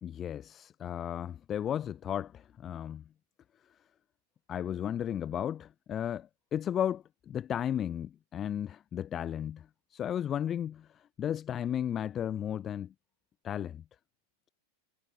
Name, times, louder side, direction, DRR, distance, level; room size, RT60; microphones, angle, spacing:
voice 1, 0.0-3.0 4.5-9.6 9.9-10.9 11.2-12.9 13.4-13.8, left 9 dB, 25° left, 0.4 m, -34 dB
figure-of-eight pair, 90°, 0 cm